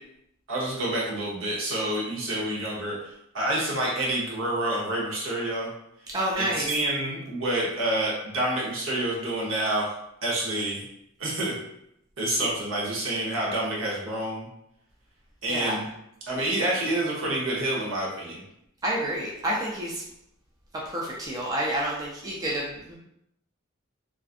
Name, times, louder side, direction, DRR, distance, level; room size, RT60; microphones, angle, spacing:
voice 1, 0.5-3.0 3.3-5.7 6.4-9.9 10.2-10.8 11.2-11.6 12.2-14.5 15.4-15.8 16.3-18.4, right 1 dB, 70° right, -4 dB, 0.8 m, -28 dB
voice 2, 6.1-6.7 12.4-12.5 15.5-15.8 18.8-20.0 20.9-22.9, right 1 dB, 20° right, -4 dB, 0.3 m, -29 dB
2.5 x 2.4 x 2.4 m, 0.79 s
head